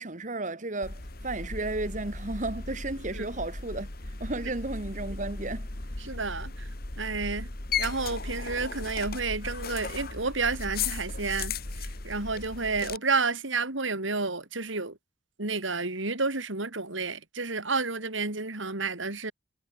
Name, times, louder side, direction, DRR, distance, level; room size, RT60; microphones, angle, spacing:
voice 1, 0.0-5.7, right 2 dB, 40° right, 1.5 m, -34 dB
sound 1, 0.8-13.0, left 4 dB, 50° left, 2.1 m, -36 dB
voice 2, 6.0-6.7 7.0-7.5 7.8-11.6 12.0-15.0 15.4-19.3, right 4 dB, 80° right, 3.6 m, -30 dB
head